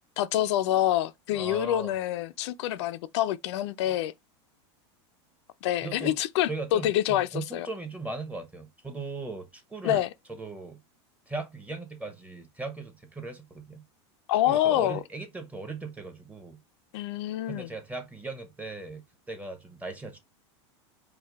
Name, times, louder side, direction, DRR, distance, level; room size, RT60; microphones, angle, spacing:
voice 1, 0.2-4.1 5.6-7.7 9.8-10.1 14.3-15.0 16.9-17.7, left 13 dB, 70° left, 0.5 m, -26 dB
voice 2, 1.3-1.9 5.8-6.2 6.5-10.0 10.3-10.8 11.3-13.8 14.5-16.6 17.5-20.2, right 3 dB, 10° right, 1.0 m, -38 dB
4.6 x 2.3 x 3.4 m
supercardioid pair, 120°, 15 cm